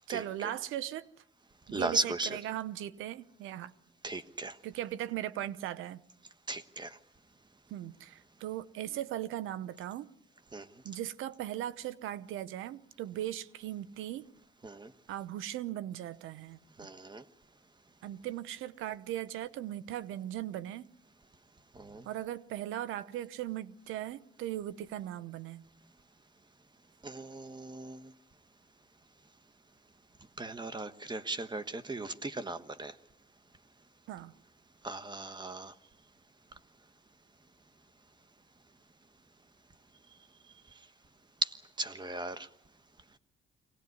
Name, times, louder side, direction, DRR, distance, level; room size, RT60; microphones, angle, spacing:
voice 1, 0.1-1.1 1.7-3.7 4.6-6.0 7.7-10.1 10.8-14.3 15.1-16.6 18.0-20.9 22.0-25.7 34.1-34.3, right 12 dB, 90° right, 17 dB, 0.9 m, -38 dB
voice 2, 1.7-2.4 4.0-4.5 6.5-7.0 10.5-10.7 14.6-14.9 16.8-17.2 21.7-22.0 27.0-28.1 30.4-32.9 34.8-35.7 41.4-41.5 41.8-42.5, right 2 dB, 20° right, 12 dB, 1.4 m, -37 dB
23.5 x 18.0 x 9.6 m, 0.77 s
cardioid pair, 90°, 20 cm